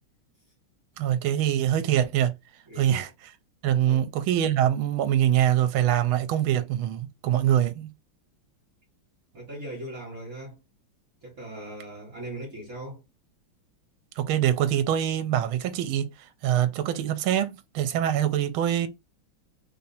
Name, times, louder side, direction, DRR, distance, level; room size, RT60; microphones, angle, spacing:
voice 1, 1.0-2.3 2.8-3.1 3.6-7.9 14.2-16.1 16.4-18.9, right 11 dB, 80° right, 1.5 m, -24 dB
voice 2, 2.7-3.1 3.8-4.0 9.3-10.6 11.2-13.0, right 1 dB, 45° right, 1.9 m, -39 dB
3.6 x 2.8 x 4.1 m
omnidirectional pair, 2.3 m